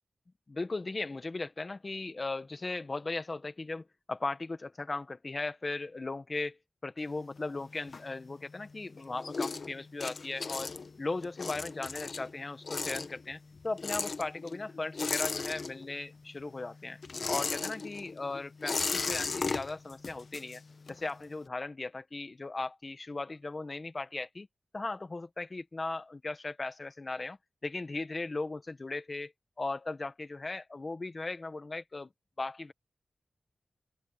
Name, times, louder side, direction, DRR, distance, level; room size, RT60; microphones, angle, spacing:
voice 1, 0.5-10.7 11.0-17.0 17.3-20.6 20.9-24.5 24.7-27.4 27.6-29.3 29.6-32.1 32.4-32.7, left 3 dB, 35° left, 1.3 m, -37 dB
sound 1, 7.0-8.6 8.9-16.2 16.4-21.1, left 4 dB, 60° left, 1.1 m, -36 dB
open air
wide cardioid pair, 115°, 0 cm